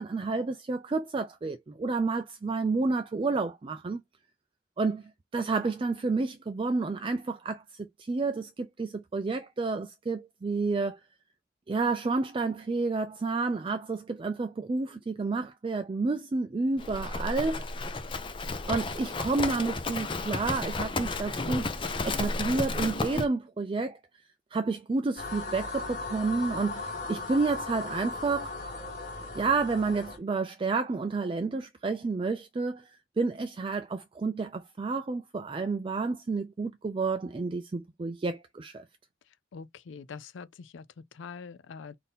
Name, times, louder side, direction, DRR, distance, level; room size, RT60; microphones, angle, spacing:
voice 1, 0.0-4.0 4.8-5.0 5.3-11.0 11.7-17.7 18.7-24.0 24.5-28.5 29.3-32.9 33.2-38.8, right 3 dB, 25° right, 0.3 m, -30 dB
Livestock farm animals working animals, 16.8-23.3, left 3 dB, 25° left, 0.5 m, -32 dB
sound 1, 25.2-30.2, left 3 dB, 40° left, 1.3 m, -37 dB
voice 2, 39.5-42.0, left 5 dB, 75° left, 0.4 m, -44 dB
3.9 x 2.7 x 3.6 m
head